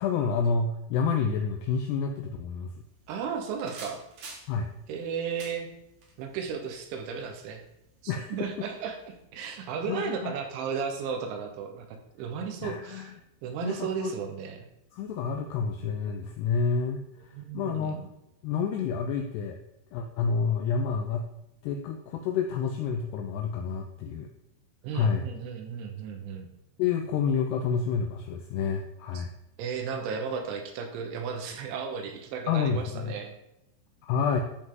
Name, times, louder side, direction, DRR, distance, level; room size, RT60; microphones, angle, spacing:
voice 1, 0.0-2.7 4.5-4.7 8.1-8.4 9.9-10.3 12.6-13.1 13.6-14.2 14.9-18.0 18.4-19.6 19.9-21.2 21.6-24.3 24.9-25.2 26.8-29.3 32.5-33.1 34.0-34.4, left 6 dB, 85° left, 4 dB, 2.4 m, -29 dB
sound 1, 2.8-9.2, right 3 dB, 55° right, 2.2 m, -52 dB
voice 2, 3.1-4.0 4.9-5.7 6.2-7.6 8.0-13.1 13.4-14.6 17.3-18.1 24.8-26.5 29.1-29.2 29.6-33.3, right 6 dB, 80° right, 4 dB, 3.4 m, -34 dB
13.5 x 5.3 x 3.8 m, 0.85 s
omnidirectional pair, 5.5 m